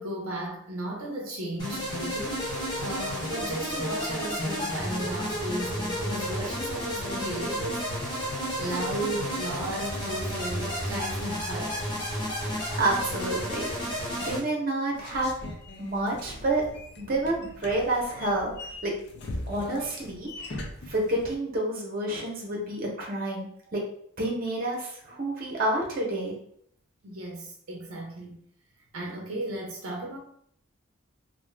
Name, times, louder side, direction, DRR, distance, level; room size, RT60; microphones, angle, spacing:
voice 1, 0.0-8.3 8.5-11.9 25.1-25.2 27.0-28.4 28.9-30.2, right 1 dB, 75° right, 0 dB, 0.6 m, -35 dB
sound 1, 1.6-14.4, equal, 20° left, 0.8 m, -32 dB
voice 2, 12.5-13.7 14.2-15.3 15.8-16.6 17.0-18.9 19.5-20.6 20.9-23.8 24.2-26.4, right 1 dB, 40° right, -1 dB, 0.8 m, -29 dB
sound 2, 14.9-21.3, left 1 dB, 50° left, 0.5 m, -40 dB
2.6 x 2.4 x 3.3 m, 0.66 s
head